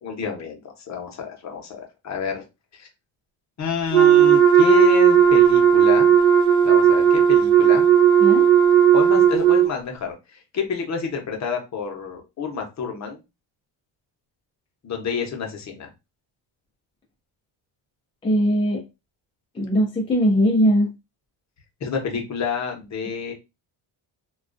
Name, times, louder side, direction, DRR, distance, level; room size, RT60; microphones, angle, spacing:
voice 1, 0.0-2.4 2.7-2.9 3.6-6.1 6.6-7.9 8.9-13.2 14.8-15.9 21.8-23.3, left 6 dB, 35° left, 2 dB, 0.7 m, -28 dB
Wind instrument woodwind instrument, 3.9-9.7, right 8 dB, 60° right, 0.8 m, -15 dB
voice 2, 18.2-18.8 19.5-20.9, equal, 15° left, -1 dB, 0.4 m, -20 dB
2.3 x 2.2 x 2.4 m, 0.25 s
cardioid pair, 130°, 47 cm